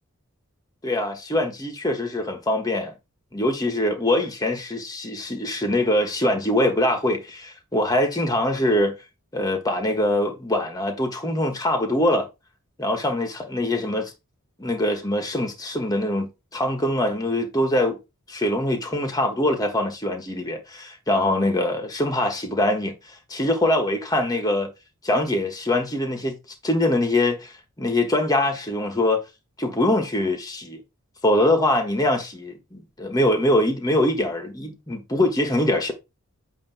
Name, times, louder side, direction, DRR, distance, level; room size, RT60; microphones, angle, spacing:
voice 1, 0.8-2.9 3.3-8.9 9.3-12.3 12.8-14.1 14.6-18.0 18.3-22.9 23.3-24.7 25.0-26.4 26.6-29.2 29.6-30.8 31.2-35.9, left 1 dB, 20° left, 1.4 m, -23 dB
8.5 x 2.9 x 5.9 m
head